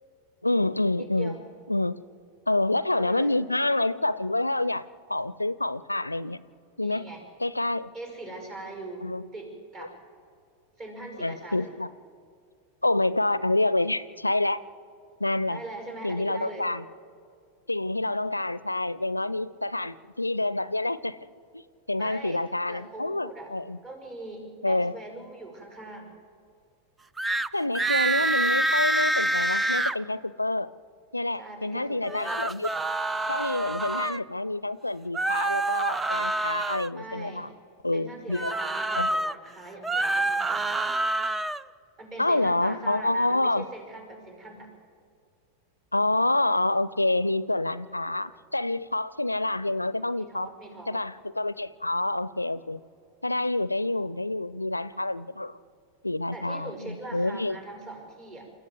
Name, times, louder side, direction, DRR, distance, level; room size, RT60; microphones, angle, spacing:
voice 1, 0.4-1.4 1.7-2.0 2.5-6.4 6.8-7.0 7.4-7.9 9.0-9.2 11.2-11.9 12.8-14.6 15.2-15.6 16.0-16.8 17.7-21.2 21.5-21.6 21.9-23.8 24.6-24.9 27.5-30.7 31.1-32.7 33.3-37.5 37.8-38.6 39.0-39.1 42.2-43.7 45.9-50.5 50.9-52.8 53.2-55.6 56.0-57.6, left 2 dB, 85° left, 18 dB, 0.4 m, -27 dB
voice 2, 1.0-1.4 2.9-3.4 6.8-7.3 7.9-10.0 10.8-11.7 15.5-16.7 22.0-23.5 23.8-26.2 31.4-32.4 37.0-37.5 37.9-40.9 42.0-44.7 50.2-51.0 56.3-58.5, right 2 dB, 35° right, 3 dB, 5.3 m, -42 dB
sound 1, 27.2-27.5 27.7-30.0 32.0-34.2 35.1-36.9 38.3-39.3 39.7-41.6, right 2 dB, 10° right, 0.5 m, -27 dB
28.5 x 14.0 x 7.9 m, 2.3 s
figure-of-eight pair, 90°, 0 cm